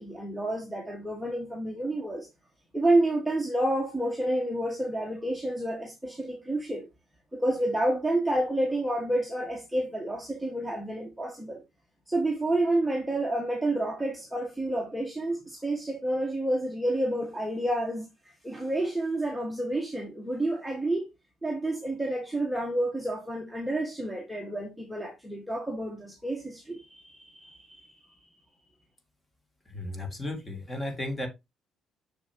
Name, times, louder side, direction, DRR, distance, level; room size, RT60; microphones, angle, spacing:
voice 1, 0.0-2.3 2.7-6.9 7.3-11.6 12.1-18.1 18.4-21.0 21.4-28.0, right 1 dB, ahead, 1.5 m, -29 dB
voice 2, 29.7-31.3, left 1 dB, 15° left, 2.3 m, -34 dB
7.1 x 6.3 x 2.8 m
cardioid pair, 135°, 0 cm